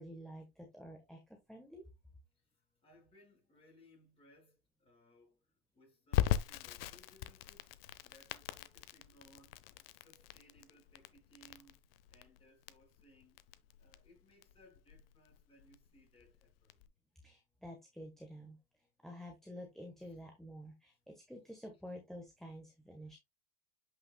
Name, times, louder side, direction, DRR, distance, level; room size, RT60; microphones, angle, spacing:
voice 1, 0.0-1.8 17.2-18.6 19.0-23.2, equal, ahead, 1.2 m, -50 dB
voice 2, 2.3-11.8 12.1-13.4 13.8-16.8 20.0-20.2, equal, 20° left, 5.1 m, -65 dB
Crackle, 6.1-16.9, left 13 dB, 75° left, 0.8 m, -40 dB
8.5 x 5.7 x 2.3 m
supercardioid pair, 140°, 29 cm